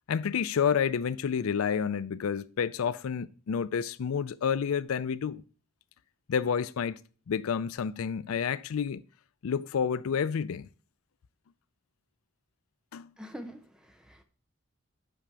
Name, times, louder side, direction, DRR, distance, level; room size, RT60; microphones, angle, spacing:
voice 1, 0.1-5.4 6.3-7.0 7.3-9.0 9.4-10.7 12.9-13.1, left 7 dB, 85° left, 0.4 m, -29 dB
voice 2, 13.2-14.2, equal, 5° right, 0.7 m, -45 dB
5.8 x 5.0 x 6.6 m
head